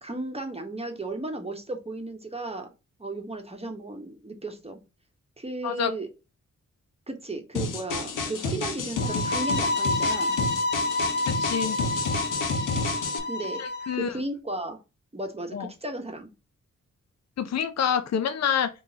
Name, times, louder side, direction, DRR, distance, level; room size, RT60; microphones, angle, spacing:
voice 1, 0.0-2.7 3.0-4.8 5.4-6.1 7.1-10.4 13.3-13.6 13.9-14.8 15.1-16.3, right 2 dB, 20° right, 1.1 m, -35 dB
sound 1, 7.5-13.2, left 3 dB, 90° left, 0.8 m, -30 dB
sound 2, 9.0-14.0, left 2 dB, 35° left, 0.9 m, -28 dB
voice 2, 11.4-11.8 13.6-14.2 15.5-15.7 17.4-18.7, left 8 dB, 60° left, 0.5 m, -27 dB
3.6 x 2.7 x 2.8 m
cardioid pair, 55°, 31 cm